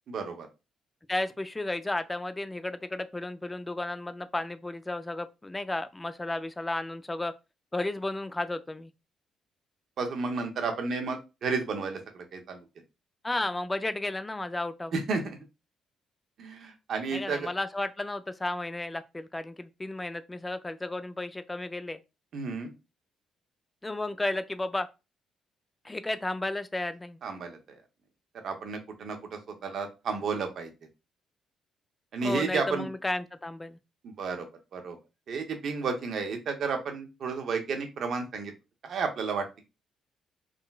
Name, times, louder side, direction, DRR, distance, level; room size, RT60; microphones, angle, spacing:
voice 1, 0.1-0.5 10.0-12.6 14.9-15.2 16.4-17.5 22.3-22.7 27.2-27.6 28.4-30.7 32.1-32.9 34.0-34.5 34.7-35.0 35.3-38.5 38.8-39.4, right 4 dB, 60° right, 0.8 m, -32 dB
voice 2, 1.1-7.3 7.7-8.9 13.2-14.9 17.1-22.0 23.8-24.9 25.8-27.2 32.2-33.8, left 2 dB, 15° left, 0.3 m, -33 dB
3.7 x 2.1 x 2.3 m
cardioid pair, 90°, 0 cm